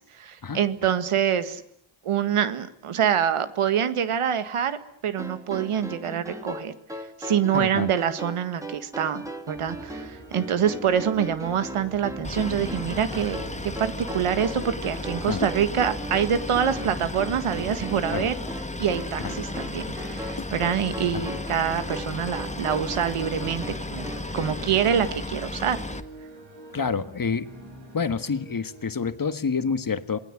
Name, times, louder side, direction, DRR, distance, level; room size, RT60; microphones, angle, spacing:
voice 1, 0.0-1.6 2.0-4.8 5.0-6.7 7.2-18.3 18.8-23.6 23.9-24.1 24.3-25.8, right 8 dB, 90° right, 12 dB, 1.9 m, -25 dB
sound 1, 5.2-24.7, right 1 dB, 5° right, 3.2 m, -38 dB
voice 2, 7.5-7.9 15.3-15.5 18.1-18.3 19.2-19.3 20.4-20.5 21.1-21.2 26.7-27.5 27.9-30.2, left 5 dB, 40° left, 11 dB, 1.6 m, -28 dB
sound 2, 9.5-28.9, right 2 dB, 60° right, 7.9 m, -44 dB
Boat Water vehicle, 12.2-26.0, left 2 dB, 15° left, 1.6 m, -35 dB
27.5 x 19.5 x 10.0 m, 0.71 s
cardioid pair, 70°, 49 cm